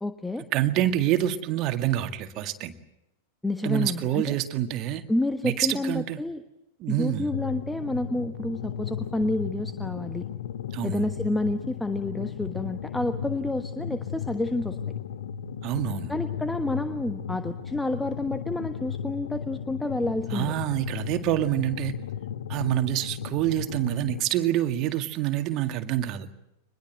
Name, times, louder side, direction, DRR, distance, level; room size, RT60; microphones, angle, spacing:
voice 1, 0.0-0.4 3.4-4.3 5.1-6.4 6.9-10.3 10.8-14.8 16.1-20.5, left 2 dB, 5° left, 9 dB, 1.3 m, -29 dB
voice 2, 0.5-2.7 3.6-5.0 5.4-6.2 6.8-7.3 10.7-11.1 15.6-16.1 20.3-21.9 22.5-26.3, right 13 dB, 40° right, 8 dB, 2.0 m, -27 dB
sound 1, 7.3-24.2, left 8 dB, 60° left, 1.1 m, -35 dB
26.0 x 21.0 x 8.0 m, 0.88 s
figure-of-eight pair, 90°, 0 cm